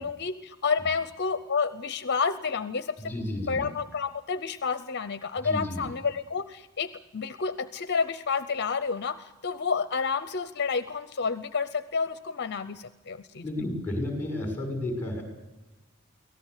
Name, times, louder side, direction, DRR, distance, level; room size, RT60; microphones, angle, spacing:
voice 1, 0.0-3.1 3.4-13.5, left 5 dB, 50° left, 14 dB, 0.7 m, -30 dB
voice 2, 3.0-3.6 5.4-5.9 13.4-15.2, left 1 dB, 10° left, 4 dB, 6.1 m, -32 dB
24.0 x 17.5 x 8.1 m, 1.1 s
head